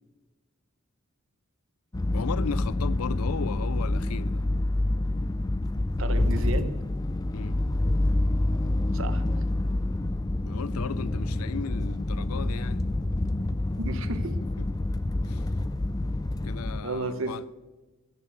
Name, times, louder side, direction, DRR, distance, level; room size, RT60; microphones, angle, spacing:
sound 1, 1.9-16.8, left 1 dB, 15° left, 0.4 m, -27 dB
voice 1, 2.1-4.5 7.3-7.6 10.4-12.9 14.4-14.7 15.3-15.5 16.4-17.5, left 6 dB, 90° left, 0.5 m, -36 dB
voice 2, 6.0-6.7 8.9-9.2 13.8-14.4 16.8-17.3, right 2 dB, 65° right, 1.0 m, -32 dB
15.0 x 7.0 x 7.6 m
head